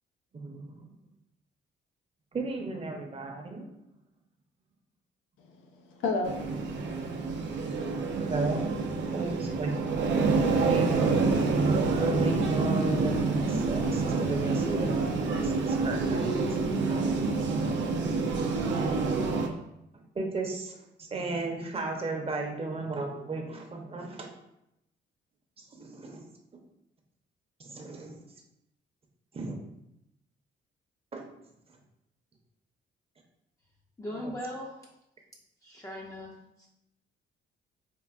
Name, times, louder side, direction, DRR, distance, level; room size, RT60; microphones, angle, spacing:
voice 1, 0.3-1.0 2.3-3.7 7.8-9.9 10.5-11.2 12.0-15.1 15.4-16.3 16.9-17.3 19.6-19.7 20.1-24.3 25.7-26.3 27.6-28.2 29.3-29.6 31.1-31.2 34.2-34.3, right 3 dB, 30° right, 2 dB, 0.7 m, -34 dB
voice 2, 5.4-7.5, left 3 dB, 85° left, 2 dB, 0.6 m, -35 dB
sound 1, 6.2-19.5, right 3 dB, 65° right, 0.5 m, -27 dB
voice 3, 9.0-9.7 34.0-35.0 35.6-36.7, left 1 dB, 15° left, -4 dB, 0.5 m, -41 dB
4.4 x 2.4 x 2.4 m, 0.83 s
cardioid pair, 90°, 20 cm